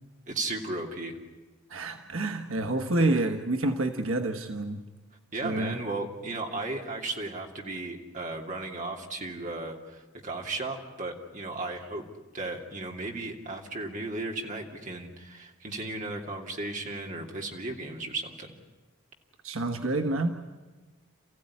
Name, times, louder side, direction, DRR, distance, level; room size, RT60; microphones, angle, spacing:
voice 1, 0.3-1.2 5.3-12.0 12.3-18.6, right 2 dB, 35° right, 1 dB, 2.7 m, -35 dB
voice 2, 1.7-4.8 5.4-5.8 19.4-20.3, right 2 dB, 75° right, 5 dB, 1.4 m, -28 dB
28.5 x 15.5 x 9.9 m, 1.3 s
head